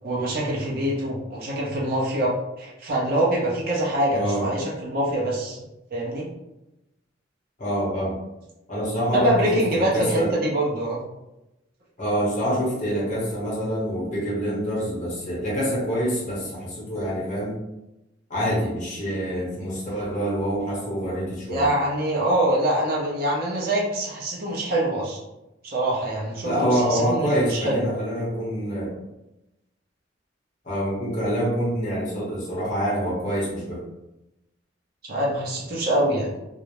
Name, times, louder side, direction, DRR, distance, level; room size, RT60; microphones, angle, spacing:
voice 1, 0.0-5.6 5.9-6.3 9.1-11.0 21.5-25.2 25.6-27.8 35.0-36.3, right 1 dB, 50° right, -4 dB, 0.7 m, -24 dB
voice 2, 4.1-4.5 7.6-8.2 8.7-10.3 12.0-17.6 18.3-21.7 26.4-28.9 30.6-33.8, equal, 40° left, -5 dB, 0.9 m, -26 dB
2.4 x 2.0 x 3.0 m, 0.94 s
head